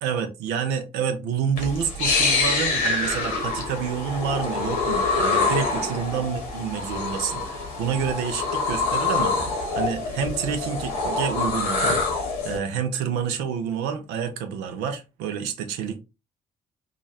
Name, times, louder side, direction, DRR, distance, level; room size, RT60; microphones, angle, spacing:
voice 1, 0.0-16.0, right 7 dB, 75° right, 0.7 m, -28 dB
sound 1, 1.6-12.6, left 3 dB, 85° left, 1.1 m, -25 dB
3.0 x 2.5 x 4.0 m
hypercardioid pair, 45°, 17 cm